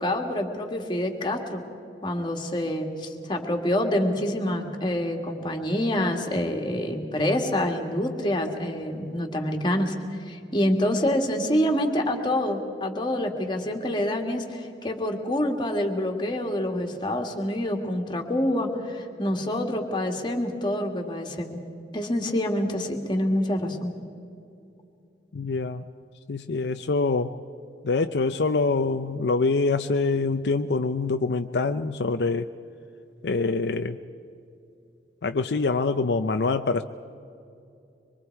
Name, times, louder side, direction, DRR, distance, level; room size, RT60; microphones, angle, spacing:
voice 1, 0.0-1.6 2.0-9.9 10.2-21.6 21.9-23.9, left 1 dB, 25° left, 3 dB, 2.0 m, -26 dB
voice 2, 25.3-25.9 26.3-27.3 27.8-32.5 33.2-34.0 35.2-36.8, left 3 dB, 70° left, 8 dB, 0.5 m, -25 dB
24.5 x 23.5 x 4.7 m, 2.7 s
head